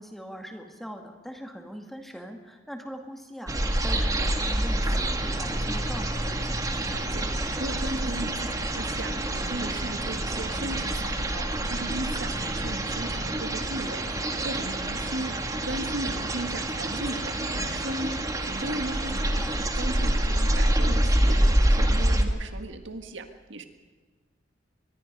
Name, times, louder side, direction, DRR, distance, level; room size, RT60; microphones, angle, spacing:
voice 1, 0.0-6.4 19.1-19.6, equal, ahead, 3 dB, 2.2 m, -41 dB
sound 1, 3.5-22.2, right 1 dB, 20° right, 1.7 m, -27 dB
voice 2, 6.9-19.4 19.8-23.6, right 2 dB, 70° right, 7 dB, 1.7 m, -37 dB
24.0 x 21.0 x 5.4 m, 1.5 s
head